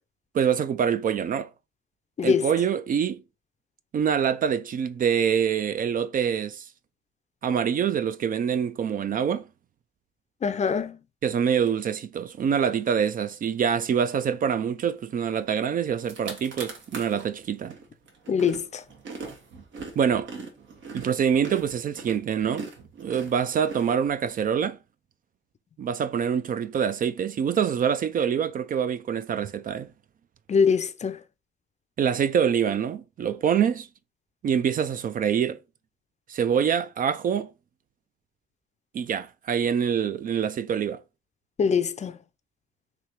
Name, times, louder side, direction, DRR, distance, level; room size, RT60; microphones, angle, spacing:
voice 1, 0.3-1.5 2.2-3.2 3.9-6.6 7.4-9.4 11.2-17.8 20.0-20.3 20.9-22.7 23.0-24.8 25.8-29.9 32.0-33.9 34.4-35.6 36.3-37.5 38.9-41.0, right 8 dB, 45° right, 0.4 m, -25 dB
voice 2, 2.2-2.5 10.4-11.0 18.3-18.8 30.5-31.2 41.6-42.2, left 6 dB, 35° left, 0.5 m, -23 dB
sound 1, 15.6-15.7 16.0-17.2 17.7-24.4, right 4 dB, 70° right, 1.4 m, -40 dB
3.3 x 2.8 x 4.4 m
cardioid pair, 90°, 20 cm